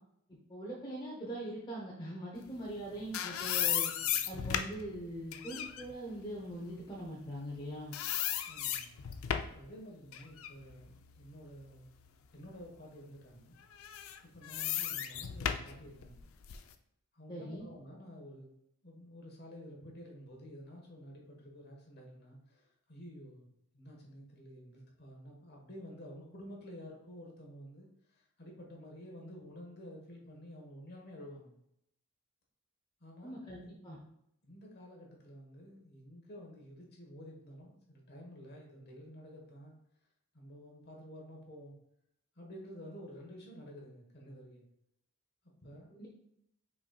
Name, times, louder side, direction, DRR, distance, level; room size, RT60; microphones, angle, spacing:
voice 1, 0.5-3.9 4.3-8.0 17.3-17.7 33.2-34.0 45.9-46.1, right 1 dB, 20° left, -4 dB, 0.7 m, -42 dB
sound 1, 2.7-7.6 7.9-9.7 10.1-12.1 12.6-12.7 13.7-16.7, left 10 dB, 65° left, 0.4 m, -36 dB
voice 2, 8.5-8.9 9.4-11.9 12.3-13.5 14.3-16.3 17.1-18.5 18.8-23.5 23.7-31.6 33.0-33.8 34.4-39.8 40.3-41.7 42.3-44.6 45.6-45.9, equal, 45° left, 0 dB, 1.2 m, -51 dB
5.8 x 4.0 x 2.3 m, 0.77 s
head